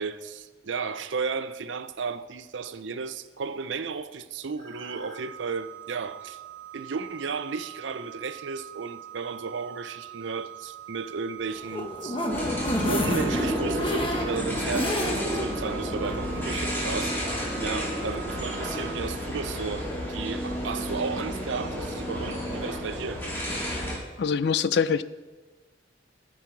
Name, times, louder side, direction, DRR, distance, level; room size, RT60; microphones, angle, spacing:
voice 1, 0.0-6.4 6.7-12.2 12.8-17.2 17.6-23.2, right 5 dB, 80° right, 0.5 m, -34 dB
sound 1, 4.6-19.1, right 11 dB, 40° right, 2.0 m, -44 dB
sound 2, 11.5-15.5 15.9-16.0 16.3-16.4, left 1 dB, 30° left, 1.1 m, -30 dB
sound 3, 12.3-24.0, equal, 10° left, 2.8 m, -31 dB
voice 2, 24.2-25.0, left 6 dB, 60° left, 0.4 m, -24 dB
14.5 x 6.2 x 4.6 m
head